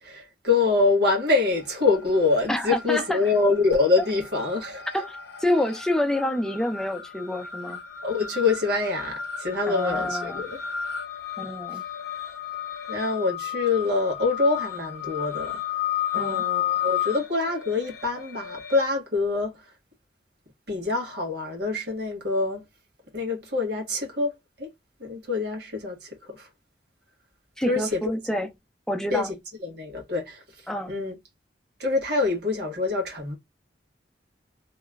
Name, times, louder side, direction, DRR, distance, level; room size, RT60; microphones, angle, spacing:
voice 1, 0.0-5.0 8.0-10.6 11.7-11.8 12.9-15.8 16.1-19.7 20.7-22.7 23.1-24.7 25.0-26.5 27.7-28.0 29.1-29.3 29.6-31.1 31.8-33.4, left 3 dB, 65° right, 1.5 m, -25 dB
sound 1, 1.3-2.0 2.3-18.9, left 9 dB, 65° left, 0.6 m, -33 dB
voice 2, 2.5-3.2 4.9-7.8 9.7-10.4 11.4-11.8 16.2-16.4 27.6-28.5 28.9-29.3 30.7-30.9, left 1 dB, 5° left, 0.4 m, -27 dB
2.9 x 2.2 x 2.2 m
head